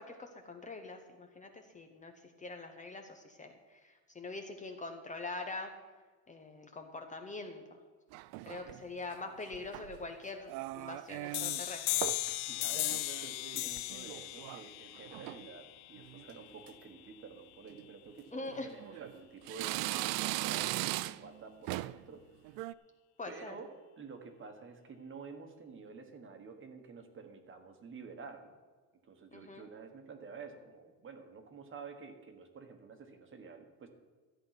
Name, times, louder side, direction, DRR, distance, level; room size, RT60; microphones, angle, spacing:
voice 1, 0.0-2.1 2.4-5.7 6.3-7.8 8.5-11.8 18.3-18.7 23.2-23.5 29.3-29.7, left 3 dB, 20° left, 4 dB, 0.9 m, -44 dB
sound 1, 8.1-8.8 9.5-10.1 10.5-11.7 12.0-12.4 12.7-14.7 15.0-15.4 16.0-16.3 16.7-16.8 17.7-17.8 18.5-19.1 19.5-21.4 21.7-22.1 22.4-22.7, right 18 dB, 80° right, 0.5 m, -39 dB
voice 2, 8.4-8.7 12.5-22.2 23.2-23.7 24.0-28.5 29.0-33.9, right 5 dB, 30° right, 6 dB, 1.4 m, -50 dB
sound 2, 11.3-16.7, left 20 dB, 70° left, 0.5 m, -37 dB
13.5 x 8.6 x 5.9 m, 1.4 s
cardioid pair, 145°, 39 cm